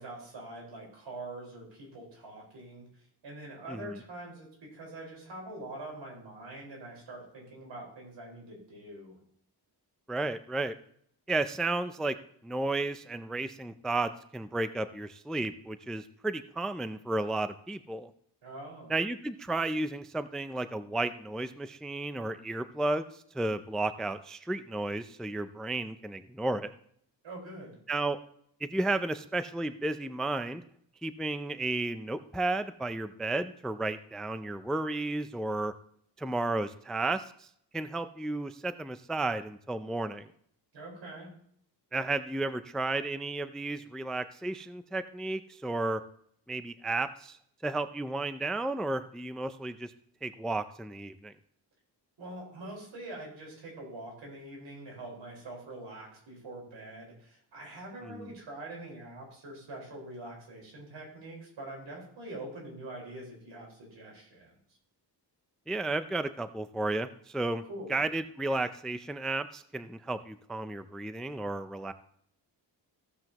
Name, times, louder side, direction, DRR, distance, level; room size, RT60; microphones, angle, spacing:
voice 1, 0.0-9.2 18.4-18.9 27.2-27.8 40.7-41.3 52.2-64.5 67.7-68.1, right 1 dB, 85° right, -1 dB, 4.8 m, -44 dB
voice 2, 10.1-10.7 11.3-12.2 12.4-18.1 18.9-26.7 27.9-28.2 28.6-30.6 31.0-35.7 36.2-37.5 37.7-40.3 41.9-46.0 46.5-47.4 47.6-49.9 50.2-51.3 58.0-58.3 65.7-67.6 67.9-71.9, right 2 dB, ahead, 11 dB, 0.3 m, -33 dB
15.0 x 7.7 x 2.9 m, 0.65 s
wide cardioid pair, 130°, 43 cm